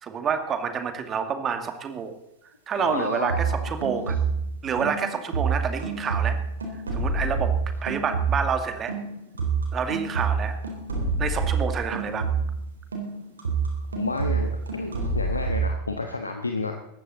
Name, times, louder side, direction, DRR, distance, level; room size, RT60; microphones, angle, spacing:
voice 1, 0.0-2.2 2.7-4.2 4.6-6.4 6.9-7.5 7.8-8.9 9.7-10.6 11.2-12.3, right 6 dB, 25° right, 7 dB, 2.1 m, -28 dB
voice 2, 2.8-3.7 13.9-16.7, left 3 dB, 80° left, 5 dB, 1.4 m, -31 dB
sound 1, 3.3-4.5 4.8-8.6 8.9-12.6 12.9-15.7, right 4 dB, 70° right, 4.0 m, -27 dB
19.5 x 14.5 x 4.1 m, 0.83 s
figure-of-eight pair, 90°, 0 cm